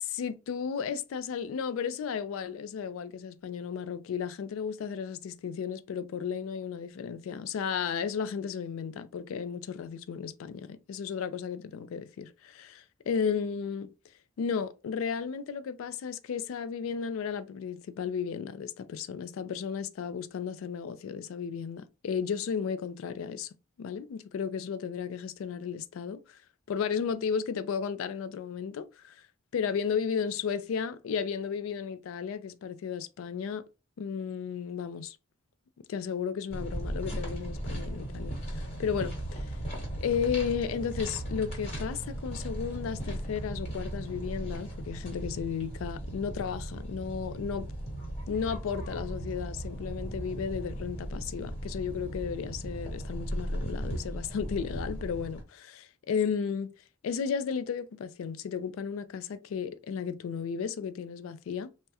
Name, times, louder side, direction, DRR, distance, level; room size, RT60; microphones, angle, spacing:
voice 1, 0.1-13.9 14.4-23.5 23.8-26.4 26.7-29.2 29.5-33.6 34.0-35.2 35.9-39.5 40.0-47.7 48.3-56.7 57.0-61.7, left 6 dB, 80° left, 0.3 m, -34 dB
sound 1, 36.5-55.4, right 1 dB, 30° left, 1.1 m, -37 dB
3.4 x 2.1 x 2.7 m
head